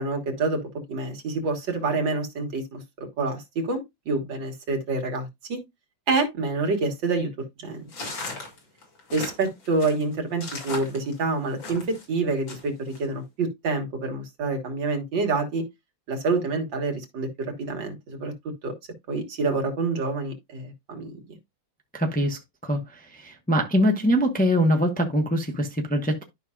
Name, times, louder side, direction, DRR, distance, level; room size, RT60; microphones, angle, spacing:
voice 1, 0.0-5.6 6.1-7.3 7.6-7.9 9.1-15.6 16.1-18.7 19.1-21.1, right 3 dB, 75° right, 2.4 m, -27 dB
sound 1, 7.9-12.1 12.5-13.0, left 3 dB, 85° left, 3.2 m, -37 dB
voice 2, 21.9-26.2, equal, 5° left, 0.8 m, -23 dB
12.0 x 5.4 x 2.4 m
omnidirectional pair, 2.0 m